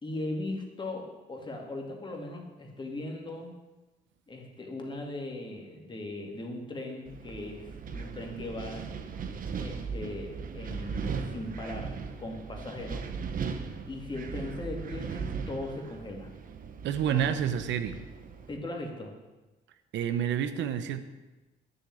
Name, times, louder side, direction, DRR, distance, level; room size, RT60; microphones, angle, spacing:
voice 1, 0.0-3.6 4.3-8.9 9.6-13.0 13.9-16.3 17.1-17.2 18.5-19.1, left 2 dB, 25° left, 2 dB, 2.2 m, -38 dB
Wind, 7.1-18.6, right 5 dB, 50° right, 1.1 m, -38 dB
voice 2, 16.8-18.0 19.9-21.0, right 9 dB, 90° right, 10 dB, 0.9 m, -29 dB
10.0 x 6.9 x 9.2 m, 1.1 s
cardioid pair, 135°, 18 cm